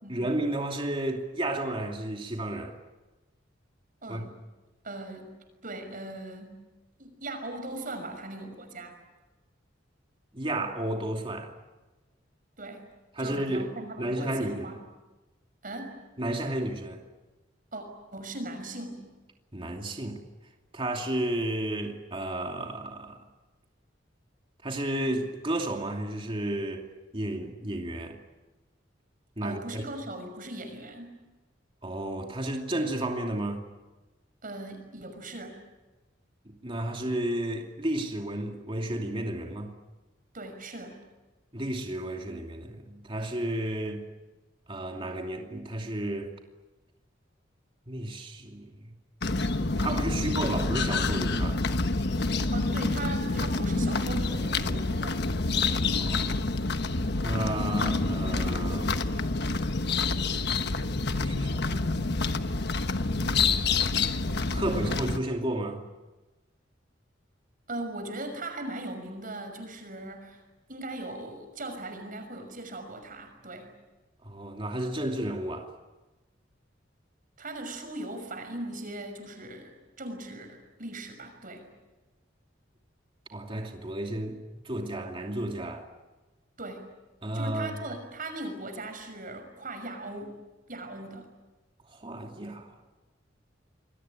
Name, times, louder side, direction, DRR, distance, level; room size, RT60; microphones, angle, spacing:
voice 1, 0.1-2.8 4.1-4.3 10.3-11.5 13.1-13.7 14.0-14.8 16.2-17.0 19.5-20.2 20.7-23.2 24.6-26.8 27.1-28.2 29.4-29.8 31.8-33.6 36.6-39.7 41.5-44.0 44.7-46.3 47.9-48.8 49.8-51.6 55.8-56.3 57.2-59.0 61.1-62.1 63.1-63.5 64.5-65.8 74.2-75.7 83.3-84.4 84.6-85.9 87.2-87.8 91.9-92.9, right 1 dB, 30° right, 2.7 m, -32 dB
voice 2, 4.0-4.3 4.8-5.3 5.6-6.6 7.0-9.0 12.6-12.8 13.2-14.8 15.6-16.0 17.7-17.8 18.1-19.0 29.4-31.2 34.4-35.6 40.3-41.0 52.5-55.2 67.7-70.4 70.7-73.7 77.4-81.7 86.6-86.9 87.3-90.4 90.7-91.3, right 2 dB, 45° right, 6.1 m, -39 dB
sound 1, 49.2-65.2, left 3 dB, 60° left, 1.3 m, -27 dB
27.5 x 22.5 x 9.0 m
head